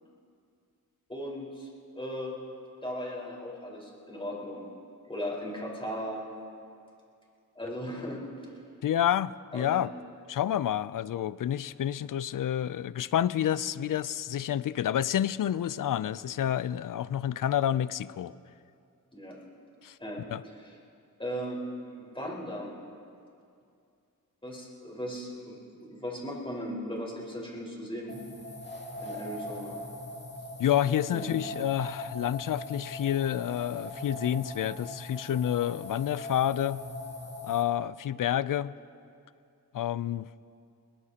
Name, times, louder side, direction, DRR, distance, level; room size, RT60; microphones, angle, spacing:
voice 1, 1.1-2.3 2.8-4.7 5.1-6.2 7.5-8.2 9.5-9.8 19.1-19.4 20.0-20.8 21.2-21.6 22.0-22.7 24.4-28.1 29.0-29.8 31.1-31.3, equal, 15° left, -4 dB, 4.6 m, -37 dB
voice 2, 8.8-9.9 10.3-18.3 19.8-20.0 20.3-20.4 30.6-36.8 37.4-38.7 39.7-40.3, left 10 dB, 65° left, 18 dB, 0.5 m, -29 dB
sound 1, 28.1-37.6, left 1 dB, 30° left, 2.3 m, -41 dB
22.0 x 19.5 x 2.9 m, 2.5 s
cardioid pair, 60°, 36 cm